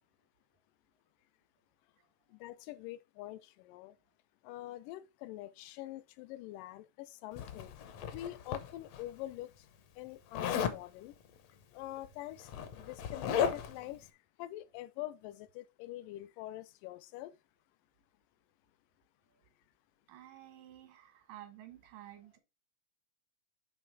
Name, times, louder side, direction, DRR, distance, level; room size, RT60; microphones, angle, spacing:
voice 1, 2.3-3.9 4.4-7.7 8.1-9.7 10.0-11.1 11.7-14.1 14.4-17.3, left 15 dB, 90° left, 2.2 m, -45 dB
Zipper (clothing), 7.4-9.0 10.3-10.8 12.0-12.1 12.4-13.8, left 8 dB, 70° left, 1.7 m, -35 dB
voice 2, 20.1-22.4, right 13 dB, 85° right, 2.9 m, -52 dB
8.3 x 3.3 x 4.5 m
omnidirectional pair, 3.7 m